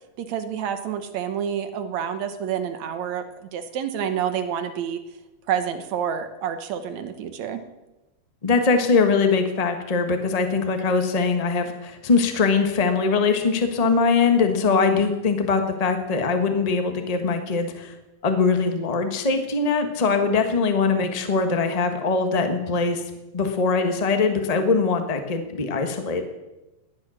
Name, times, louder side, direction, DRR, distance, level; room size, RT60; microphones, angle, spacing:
voice 1, 0.2-5.0 5.5-7.6, right 8 dB, 70° right, 9 dB, 2.3 m, -28 dB
voice 2, 8.4-17.9 18.2-23.0 23.3-26.2, left 4 dB, 75° left, 6 dB, 0.3 m, -22 dB
18.5 x 10.5 x 6.4 m, 1.0 s
omnidirectional pair, 3.5 m